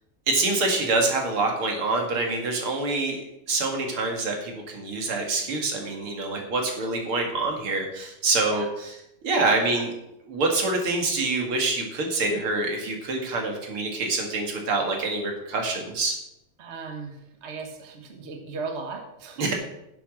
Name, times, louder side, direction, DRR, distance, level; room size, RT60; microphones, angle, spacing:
voice 1, 0.3-3.2 3.5-8.9 9.2-9.9 10.3-16.1 19.4-19.5, right 3 dB, 75° right, 1 dB, 3.0 m, -26 dB
voice 2, 16.6-19.4, right 4 dB, 35° right, 3 dB, 1.6 m, -37 dB
10.0 x 8.2 x 6.4 m, 0.84 s
omnidirectional pair, 2.4 m